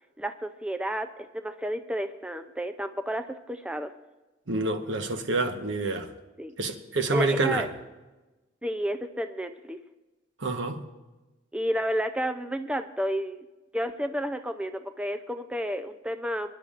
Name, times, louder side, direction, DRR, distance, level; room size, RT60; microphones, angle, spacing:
voice 1, 0.2-1.1 1.3-3.9 6.4-6.5 7.1-7.7 8.6-9.8 11.5-13.5 13.7-16.6, equal, 5° right, 0.4 m, -31 dB
voice 2, 4.5-6.1 6.6-7.7 10.4-10.8, right 2 dB, 75° right, 1.1 m, -27 dB
25.5 x 10.5 x 2.5 m
head